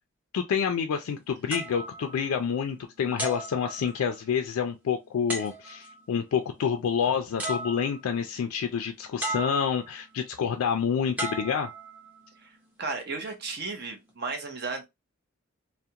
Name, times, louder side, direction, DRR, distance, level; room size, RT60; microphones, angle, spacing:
voice 1, 0.3-11.7, left 7 dB, 90° left, 0.3 m, -28 dB
sound 1, 1.5-2.7 3.2-4.3 5.3-6.0 7.0-7.1 7.4-8.2 9.2-10.0 11.2-12.3 13.0-13.3, right 1 dB, 5° right, 0.6 m, -35 dB
voice 2, 12.8-14.8, right 3 dB, 50° right, 0.6 m, -34 dB
2.3 x 2.1 x 2.8 m
head